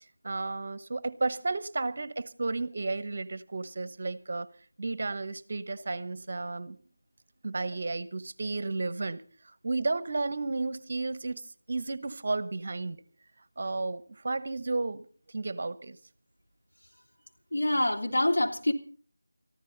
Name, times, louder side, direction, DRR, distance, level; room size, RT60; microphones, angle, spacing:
voice 1, 0.2-4.5 4.8-6.8 7.4-9.2 9.6-11.4 11.7-13.0 13.6-15.1 15.3-16.0, right 3 dB, 40° right, 1.0 m, -32 dB
voice 2, 17.5-18.7, left 1 dB, 75° left, 3.2 m, -26 dB
24.0 x 14.5 x 4.0 m
figure-of-eight pair, 170°, 0 cm